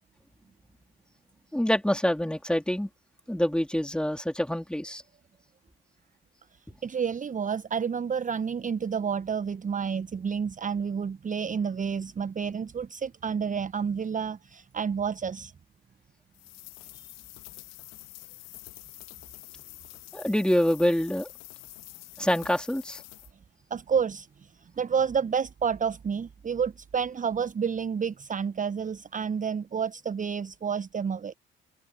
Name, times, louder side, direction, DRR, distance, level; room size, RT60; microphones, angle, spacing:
voice 1, 1.5-2.9 3.3-5.0 20.1-21.3 22.2-23.0, equal, 5° left, 3.8 m, -26 dB
voice 2, 6.8-15.5 23.7-31.3, right 6 dB, 25° right, 1.1 m, -30 dB
sound 1, 16.3-23.3, left 21 dB, 60° left, 2.8 m, -47 dB
figure-of-eight pair, 50°, 30 cm